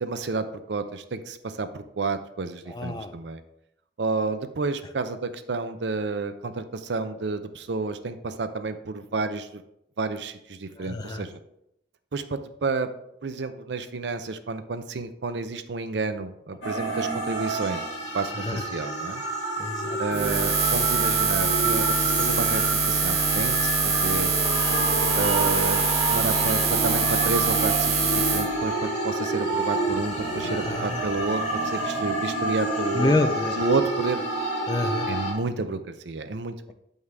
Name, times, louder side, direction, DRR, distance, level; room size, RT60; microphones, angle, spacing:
voice 1, 0.0-3.4 4.0-9.6 10.0-11.3 12.1-12.9 13.2-17.8 18.1-19.2 20.0-24.3 25.2-33.1 33.6-34.2 35.1-36.7, right 3 dB, 80° right, 10 dB, 0.6 m, -30 dB
voice 2, 2.7-3.1 10.8-11.2 16.7-16.9 18.3-18.6 19.6-20.0 30.4-31.0 32.9-33.6 34.7-35.1, left 2 dB, 20° left, 8 dB, 0.5 m, -28 dB
sound 1, 16.6-35.3, right 2 dB, 80° left, 2.6 m, -28 dB
Buzz, 20.1-28.4, right 5 dB, 30° right, 1.2 m, -24 dB
8.0 x 5.4 x 3.5 m, 0.80 s
head